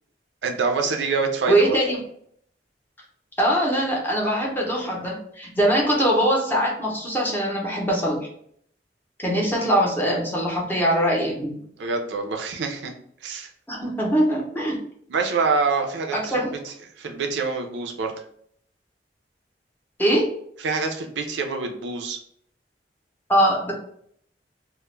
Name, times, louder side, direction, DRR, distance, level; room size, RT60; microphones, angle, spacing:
voice 1, 0.4-1.7 11.6-12.9 13.2-13.5 15.1-18.1 20.6-22.2, right 4 dB, 80° right, 3 dB, 0.4 m, -26 dB
voice 2, 1.5-2.0 3.4-8.3 9.2-11.6 13.7-14.8 16.1-16.5 20.0-20.3 23.3-23.7, right 1 dB, 10° left, -3 dB, 0.6 m, -22 dB
2.2 x 2.0 x 3.1 m, 0.66 s
head